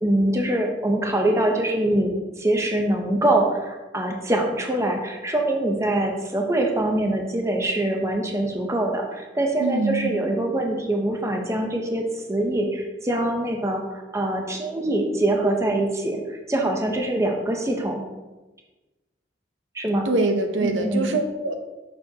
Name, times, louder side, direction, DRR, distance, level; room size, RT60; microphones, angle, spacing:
voice 1, 0.0-18.0 19.7-20.1 20.6-21.1, right 1 dB, 15° right, 2 dB, 0.7 m, -24 dB
voice 2, 9.6-10.3 20.0-21.5, right 2 dB, 90° right, 6 dB, 0.7 m, -24 dB
6.8 x 6.2 x 2.8 m, 1.1 s
head